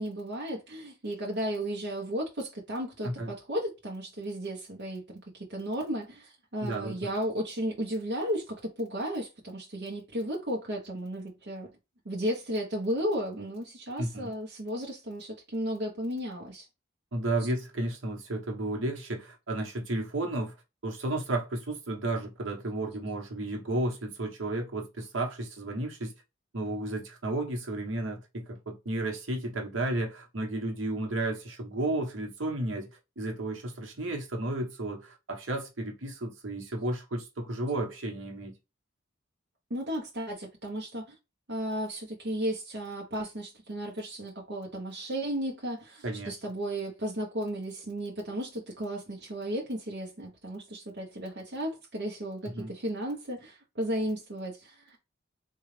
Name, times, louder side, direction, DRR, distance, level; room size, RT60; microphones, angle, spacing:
voice 1, 0.0-11.7 12.0-16.7 39.7-41.1 41.5-55.0, equal, 60° right, 0.8 m, -34 dB
voice 2, 6.6-7.1 14.0-14.3 17.1-20.5 20.8-26.1 26.5-38.5 46.0-46.3 52.5-52.7, right 2 dB, 75° right, 1.0 m, -33 dB
3.7 x 2.3 x 3.1 m
head